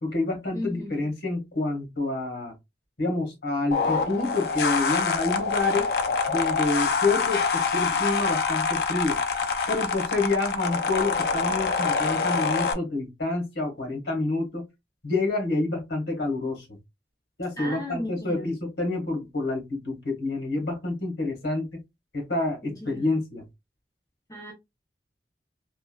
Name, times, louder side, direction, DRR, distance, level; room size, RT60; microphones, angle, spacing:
voice 1, 0.0-2.5 3.0-5.9 6.3-9.2 9.7-14.6 15.0-16.8 17.4-21.8 22.1-23.4, left 2 dB, 85° left, 1.3 m, -28 dB
voice 2, 0.5-1.0 17.6-18.5 22.6-23.1 24.3-24.5, equal, 20° left, 0.8 m, -35 dB
sound 1, 3.7-12.7, left 5 dB, 60° left, 0.4 m, -26 dB
3.3 x 2.3 x 2.2 m
head